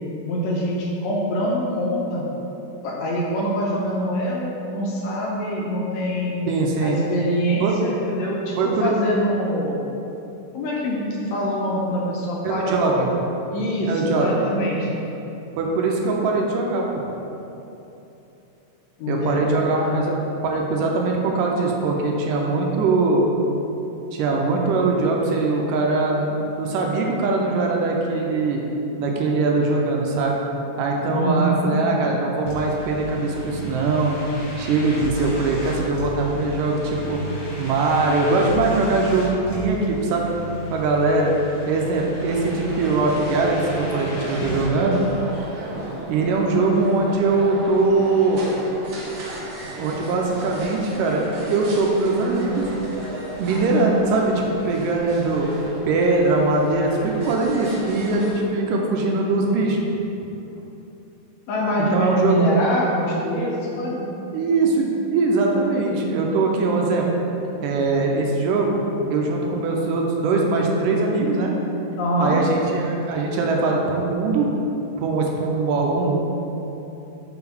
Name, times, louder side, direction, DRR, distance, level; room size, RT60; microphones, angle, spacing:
voice 1, 0.2-2.2 2.8-6.4 6.8-9.8 10.5-15.0 19.0-20.0 31.1-31.8 61.5-64.0 67.4-67.6 72.0-72.4, equal, 80° left, -3 dB, 1.6 m, -24 dB
voice 2, 6.5-7.0 7.6-7.8 8.6-9.0 12.4-13.1 13.9-14.4 15.6-17.0 19.1-23.3 24.1-28.6 29.0-30.4 30.8-34.1 34.6-37.2 37.6-40.3 40.7-41.3 41.7-45.0 46.1-48.5 49.8-51.2 51.5-52.7 53.4-55.5 55.9-59.8 61.8-62.4 64.3-67.1 67.6-68.8 69.1-71.5 72.2-74.5 75.0-76.2, right 3 dB, 80° right, 0 dB, 2.2 m, -21 dB
sound 1, 32.5-44.7, left 2 dB, 55° left, 1.5 m, -35 dB
sound 2, 42.2-58.4, right 1 dB, 65° right, 1.6 m, -36 dB
5.9 x 3.9 x 5.9 m, 3.0 s
omnidirectional pair, 3.9 m